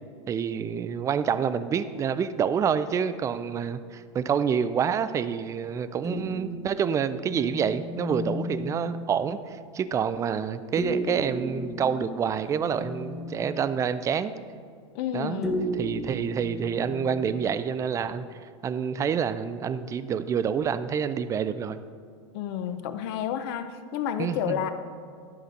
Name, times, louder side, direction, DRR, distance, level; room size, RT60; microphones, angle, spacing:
voice 1, 0.3-14.3 15.1-15.4 15.8-18.3 18.6-21.8 24.2-24.7, right 7 dB, 20° right, 13 dB, 0.4 m, -27 dB
sound 1, 6.0-9.2 10.8-13.7 15.4-17.6, left 1 dB, ahead, 0.9 m, -34 dB
voice 2, 14.9-15.7 22.3-24.7, left 9 dB, 55° left, 10 dB, 0.7 m, -30 dB
11.5 x 5.0 x 5.3 m, 2.2 s
hypercardioid pair, 110°, 16 cm